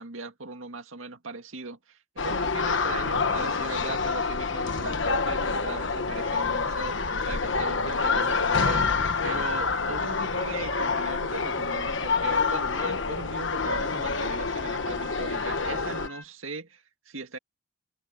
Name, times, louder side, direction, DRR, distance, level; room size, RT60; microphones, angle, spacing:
voice 1, 0.0-8.9 9.2-17.4, right 3 dB, 85° right, 2.0 m, -39 dB
sound 1, 2.2-16.1, left 4 dB, 65° left, 1.2 m, -27 dB
sound 2, 10.5-13.4 14.0-16.3, left 2 dB, 10° left, 7.4 m, -50 dB
head